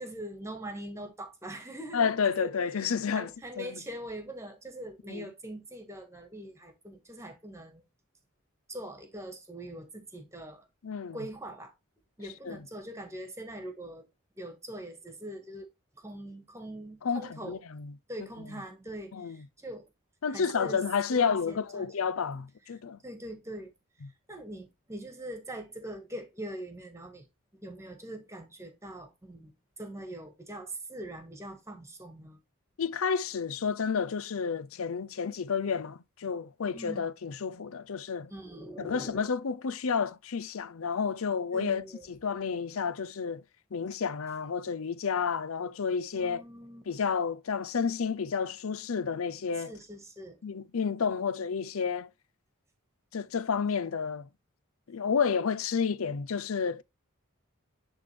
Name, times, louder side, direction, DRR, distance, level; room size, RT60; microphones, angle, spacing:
voice 1, 0.0-2.1 2.4-2.9 3.1-7.8 8.7-10.7 11.1-11.7 12.2-14.1 14.4-15.7 16.0-17.6 18.1-19.9 20.3-20.8 21.1-22.1 23.0-23.7 24.3-27.2 27.5-29.5 29.8-32.4 36.7-37.1 38.3-39.2 41.5-42.1 46.1-46.8 49.7-50.4, right 1 dB, 15° right, 1.7 m, -42 dB
voice 2, 1.9-3.3 3.6-3.8 5.1-5.2 10.8-11.2 12.5-12.6 17.0-17.9 19.1-19.4 20.2-23.0 32.8-38.3 38.8-43.4 43.7-46.4 46.9-49.7 50.4-52.1 53.1-54.3 54.9-56.8, left 6 dB, 80° left, 0.6 m, -30 dB
10.5 x 3.5 x 3.4 m
head